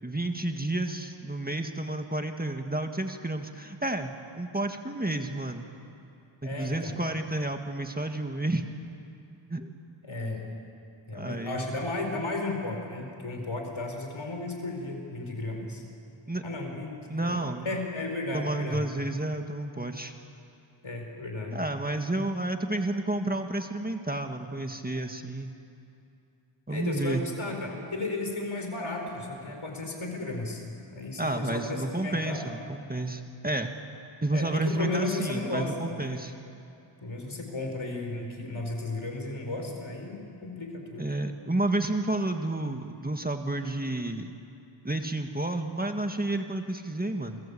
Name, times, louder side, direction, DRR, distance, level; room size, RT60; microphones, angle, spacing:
voice 1, 0.0-5.7 6.4-8.6 9.5-9.7 11.1-11.7 16.3-16.4 17.1-17.7 18.3-20.1 21.5-25.5 26.7-27.2 31.2-33.7 34.2-36.3 41.0-44.3 44.8-47.4, right 2 dB, 20° right, 5 dB, 1.7 m, -31 dB
voice 2, 6.4-6.9 10.0-10.4 11.1-15.8 16.4-18.8 20.8-21.6 26.7-30.6 30.9-32.5 34.3-36.2 37.0-41.1, left 2 dB, 70° left, 2 dB, 5.1 m, -34 dB
29.0 x 21.5 x 8.6 m, 2.7 s
wide cardioid pair, 60°, 49 cm